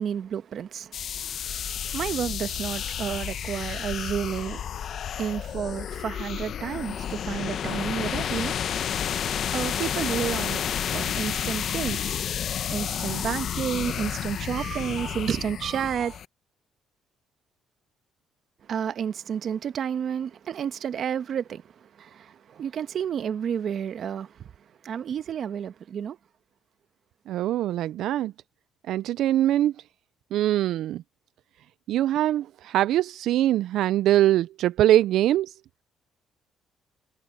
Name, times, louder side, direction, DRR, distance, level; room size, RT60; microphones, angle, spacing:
voice 1, 0.0-8.6 9.5-10.6 10.9-12.1 12.7-16.2 18.7-21.6 22.0-24.5 24.8-26.2, right 8 dB, 55° right, 1.1 m, -31 dB
sound 1, 0.9-16.2, left 9 dB, 60° left, 1.0 m, -31 dB
voice 2, 27.3-28.3 28.9-29.7 30.3-31.0 31.9-35.6, right 13 dB, 75° right, 0.3 m, -23 dB
cardioid pair, 95°, 0 cm